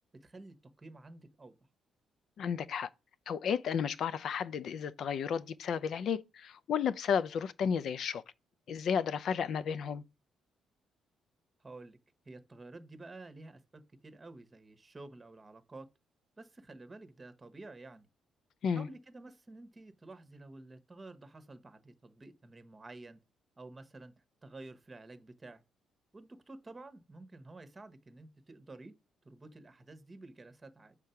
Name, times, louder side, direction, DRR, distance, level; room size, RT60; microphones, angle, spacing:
voice 1, 0.1-1.6 11.6-12.0 12.2-15.9 16.4-18.1 18.7-23.2 23.6-24.1 24.4-25.6 26.1-28.9 29.2-31.0, right 2 dB, 25° right, 1.1 m, -51 dB
voice 2, 2.4-2.9 3.3-8.2 8.7-10.0 18.6-18.9, left 7 dB, 65° left, 0.5 m, -33 dB
6.4 x 3.6 x 5.7 m
cardioid pair, 90°, 0 cm